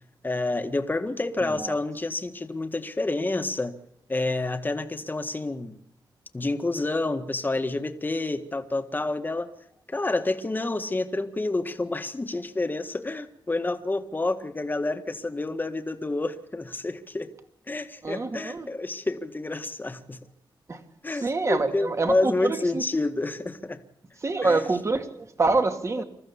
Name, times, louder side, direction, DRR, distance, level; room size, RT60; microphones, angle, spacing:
voice 1, 0.2-3.7 4.1-5.7 6.3-9.5 9.9-17.3 17.7-20.2 21.0-23.8 24.4-24.6 26.0-26.1, left 2 dB, 20° left, 8 dB, 1.7 m, -29 dB
voice 2, 18.0-18.7 20.7-20.8 21.1-22.8 24.2-26.0, right 3 dB, 35° right, 6 dB, 2.3 m, -26 dB
27.0 x 14.5 x 7.1 m, 0.74 s
wide cardioid pair, 95°, 9 cm